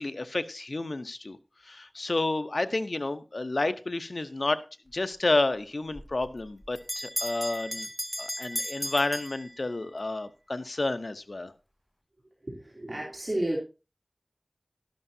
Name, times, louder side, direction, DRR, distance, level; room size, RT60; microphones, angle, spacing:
voice 1, 0.0-1.4 1.6-4.6 4.9-7.9 8.2-11.5, left 2 dB, 85° left, 10 dB, 0.7 m, -30 dB
Bell, 5.9-10.0, equal, 10° left, 1.6 m, -36 dB
voice 2, 12.4-13.6, right 1 dB, 60° right, -4 dB, 3.2 m, -31 dB
12.0 x 11.5 x 2.7 m, 0.30 s
wide cardioid pair, 45°, 0 cm